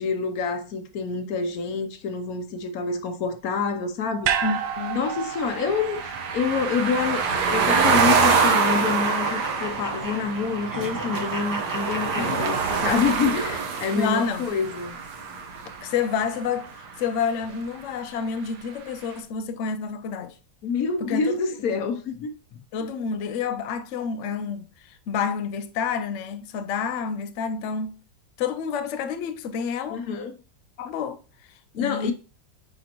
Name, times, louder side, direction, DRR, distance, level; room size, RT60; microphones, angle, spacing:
voice 1, 0.0-4.3 4.9-7.2 7.5-15.0 20.6-22.3 29.9-30.3 31.8-32.1, left 5 dB, 60° left, 1.1 m, -27 dB
sound 1, 4.2-8.6 8.9-9.0, right 9 dB, 85° right, 1.4 m, -31 dB
sound 2, 4.3-16.4, right 5 dB, 65° right, 1.5 m, -25 dB
voice 2, 4.4-5.0 12.2-12.5 14.0-14.5 15.8-16.7 17.0-20.3 21.0-21.3 21.7-21.8 22.7-28.0 28.4-30.0 30.8-31.2 31.7-32.1, left 6 dB, 80° left, 0.6 m, -29 dB
sound 3, 8.6-13.2, right 2 dB, 20° right, 0.6 m, -35 dB
9.3 x 3.9 x 2.9 m
omnidirectional pair, 2.0 m